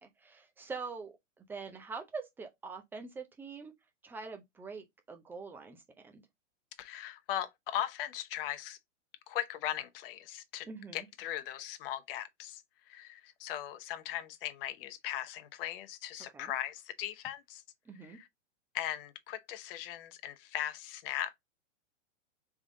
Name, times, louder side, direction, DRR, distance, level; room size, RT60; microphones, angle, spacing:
voice 1, 0.0-3.7 4.0-6.2 10.7-11.1 16.3-16.5 17.9-18.2, right 4 dB, 5° right, 0.4 m, -44 dB
voice 2, 6.8-8.8 9.3-10.7 10.9-12.6 12.9-17.6 18.0-18.3 18.7-21.3, left 12 dB, 50° left, 0.8 m, -38 dB
3.6 x 3.4 x 3.7 m
hypercardioid pair, 120°, 37 cm